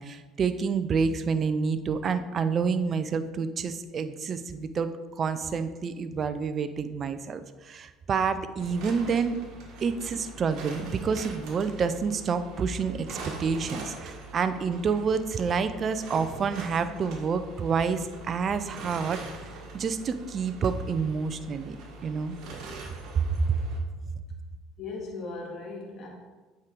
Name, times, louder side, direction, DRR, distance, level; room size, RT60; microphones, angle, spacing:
voice 1, 0.0-4.9 5.2-9.4 9.8-21.8 22.0-22.4 23.1-23.6, right 5 dB, 45° right, 10 dB, 0.7 m, -28 dB
sound 1, 8.6-23.8, right 3 dB, 65° right, 1.7 m, -43 dB
voice 2, 24.8-26.1, left 3 dB, 45° left, -2 dB, 2.2 m, -37 dB
8.3 x 5.0 x 4.6 m, 1.3 s
hypercardioid pair, 70°, 0 cm